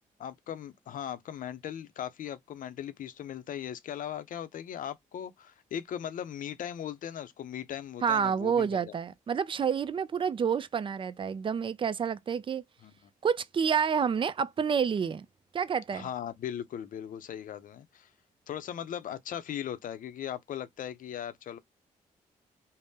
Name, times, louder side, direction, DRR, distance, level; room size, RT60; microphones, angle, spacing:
voice 1, 0.2-9.0 12.8-13.0 15.9-18.1 18.5-21.6, left 10 dB, 65° left, 0.5 m, -38 dB
voice 2, 8.0-12.6 13.2-15.3 15.5-16.1, right 7 dB, 35° right, 0.3 m, -29 dB
2.6 x 2.0 x 3.4 m
supercardioid pair, 60°, 15 cm